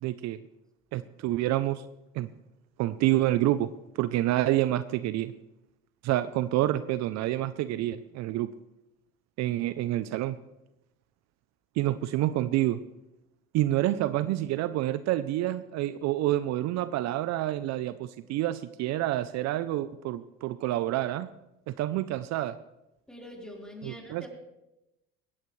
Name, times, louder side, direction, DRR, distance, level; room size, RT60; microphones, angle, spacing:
voice 1, 0.0-0.4 0.9-1.8 2.1-2.3 2.8-3.7 4.0-5.3 6.0-8.5 9.4-10.4 11.8-12.8 13.5-21.3 21.7-22.6 23.8-24.3, right 14 dB, 60° right, 14 dB, 0.6 m, -28 dB
voice 2, 23.1-24.3, equal, ahead, -1 dB, 4.4 m, -44 dB
19.0 x 15.0 x 3.3 m, 0.93 s
supercardioid pair, 75°, 30 cm